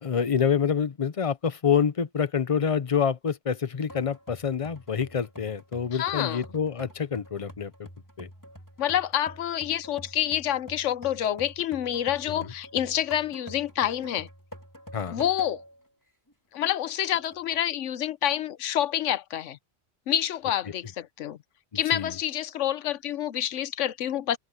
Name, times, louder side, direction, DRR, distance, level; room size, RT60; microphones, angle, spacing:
voice 1, 0.0-7.9 8.2-8.3 12.3-12.5 14.9-15.2 21.9-22.1, left 7 dB, 35° left, 0.7 m, -27 dB
sound 1, 3.9-15.8 16.3-16.4 17.1-17.7, equal, 15° left, 3.3 m, -46 dB
voice 2, 5.9-6.4 8.8-14.3 15.1-15.6 16.5-19.6 20.1-21.4 21.7-24.4, left 11 dB, 85° left, 1.1 m, -28 dB
omnidirectional pair, 1.2 m